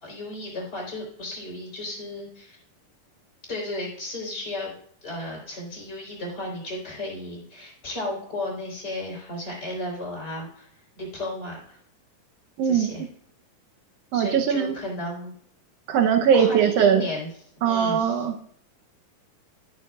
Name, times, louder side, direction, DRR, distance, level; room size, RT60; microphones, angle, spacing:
voice 1, 0.0-2.6 3.5-4.7 5.0-10.7 11.0-11.8 12.6-13.0 14.1-15.3 16.3-17.3 17.6-18.2, left 1 dB, 30° left, -4 dB, 4.0 m, -34 dB
voice 2, 12.6-12.9 14.1-14.7 15.9-17.1 17.6-18.3, right 7 dB, 90° right, 5 dB, 1.4 m, -20 dB
14.0 x 6.9 x 2.4 m, 0.64 s
omnidirectional pair, 3.9 m